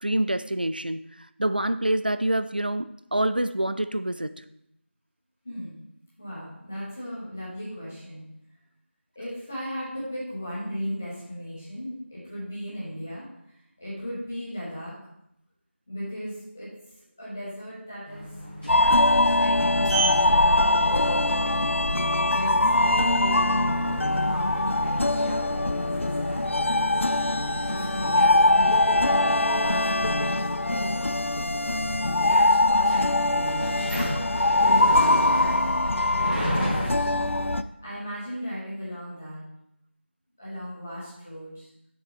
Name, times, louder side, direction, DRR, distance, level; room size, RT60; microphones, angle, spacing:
voice 1, 0.0-4.4, right 1 dB, 45° right, 12 dB, 0.3 m, -27 dB
voice 2, 5.4-5.8 6.2-8.2 9.1-13.2 13.8-14.9 15.9-16.7 17.2-18.3 18.7-21.8 22.3-23.7 24.0-26.6 27.7-31.8 32.2-33.8 34.4-35.1 35.4-35.8 36.1-37.1 37.8-39.4 40.4-41.7, equal, 10° left, -9 dB, 1.1 m, -36 dB
sound 1, 18.0-36.9, equal, 5° right, 2.2 m, -37 dB
sound 2, 18.7-37.6, left 2 dB, 80° left, 0.4 m, -22 dB
Sliding door, 19.3-37.5, right 1 dB, 30° right, 2.5 m, -37 dB
7.0 x 6.8 x 3.2 m, 0.79 s
figure-of-eight pair, 175°, 7 cm